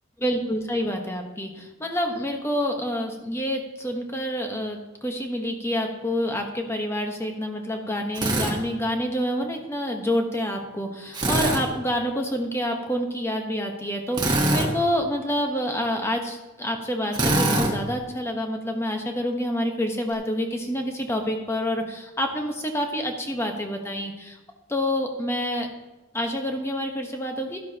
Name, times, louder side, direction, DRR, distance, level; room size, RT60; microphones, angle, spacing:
voice 1, 0.2-24.4 24.7-25.7 26.1-27.6, equal, 10° left, 3 dB, 1.1 m, -27 dB
Drill, 8.2-8.5 11.1-11.6 14.1-14.7 17.1-17.7, right 2 dB, 20° right, 1.4 m, -22 dB
12.5 x 11.5 x 2.9 m, 1.1 s
head